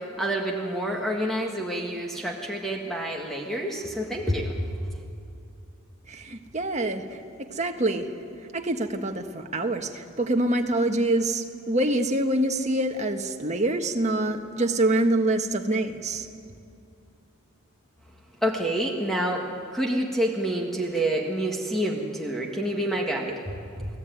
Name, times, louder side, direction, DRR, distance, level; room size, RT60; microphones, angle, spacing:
voice 1, 0.0-4.6 18.4-23.9, right 1 dB, ahead, 0 dB, 1.8 m, -28 dB
voice 2, 6.1-7.2 7.5-8.1 8.5-16.3, right 1 dB, 35° right, 4 dB, 1.5 m, -25 dB
29.5 x 18.5 x 9.4 m, 2.5 s
head